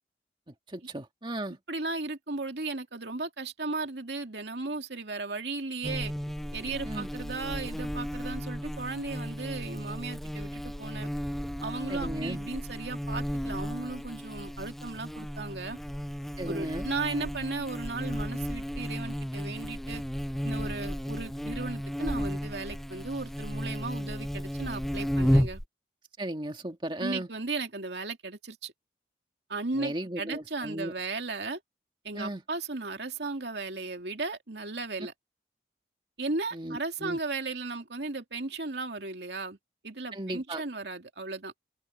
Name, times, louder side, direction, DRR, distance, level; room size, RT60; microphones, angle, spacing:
voice 1, 0.5-1.6 6.8-7.1 11.9-12.4 16.4-16.8 26.2-27.3 29.7-30.9 32.1-32.4 36.5-37.2 40.1-40.6, right 1 dB, 30° right, 2.0 m, -36 dB
voice 2, 1.7-6.1 6.5-11.1 11.6-15.8 16.5-20.0 20.4-25.6 27.0-28.7 29.5-31.6 32.0-35.1 36.2-39.6 39.8-41.5, right 3 dB, 75° right, 2.4 m, -36 dB
Buzz, 5.8-25.6, equal, ahead, 0.4 m, -33 dB
head